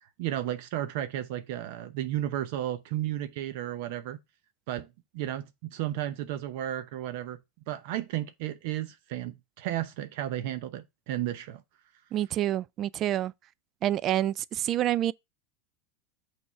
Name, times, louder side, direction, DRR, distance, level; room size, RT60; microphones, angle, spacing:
voice 1, 0.2-4.2 4.7-4.9 5.1-7.4 7.7-11.6, right 12 dB, 65° right, 0.7 m, -33 dB
voice 2, 12.1-13.3 13.8-15.1, right 12 dB, 40° right, 0.3 m, -27 dB
6.0 x 3.6 x 5.3 m
hypercardioid pair, 100°, 0 cm